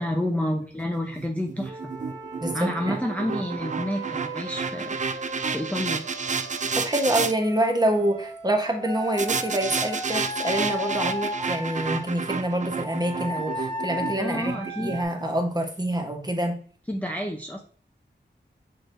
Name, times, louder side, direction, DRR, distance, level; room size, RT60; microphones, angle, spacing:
voice 1, 0.0-1.8 2.5-5.2 5.5-6.0 14.2-15.0 16.9-17.6, left 1 dB, 5° left, 1 dB, 0.6 m, -29 dB
sound 1, 1.1-7.3 9.2-15.4, right 5 dB, 40° right, 0.4 m, -31 dB
Wind instrument woodwind instrument, 1.6-6.7 7.4-12.0 12.8-15.0, equal, 75° right, 1.2 m, -36 dB
voice 2, 2.4-3.0 6.7-16.6, right 1 dB, 20° right, 3 dB, 1.0 m, -26 dB
6.2 x 3.1 x 2.6 m, 0.44 s
wide cardioid pair, 55°, 19 cm